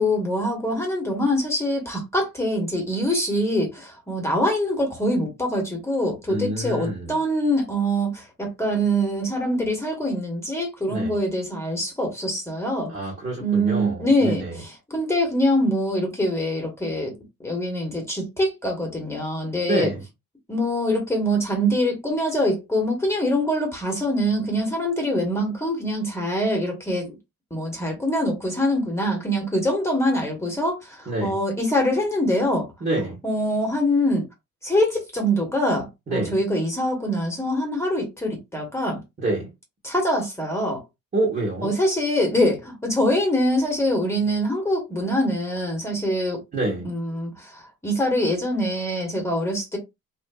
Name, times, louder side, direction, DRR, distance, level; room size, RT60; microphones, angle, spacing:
voice 1, 0.0-12.9 13.4-17.1 17.4-19.9 20.5-27.2 27.5-32.7 33.2-34.2 34.6-39.0 39.8-40.8 41.6-46.4 46.8-49.8, equal, 10° left, 1.2 m, -24 dB
voice 2, 6.3-7.2 10.9-11.2 12.9-14.5 19.6-20.0 31.1-31.3 32.8-33.2 36.1-36.3 39.2-39.5 41.1-41.7 46.5-46.9, right 1 dB, 35° right, 1.3 m, -26 dB
2.6 x 2.5 x 2.3 m
cardioid pair, 90°, 30 cm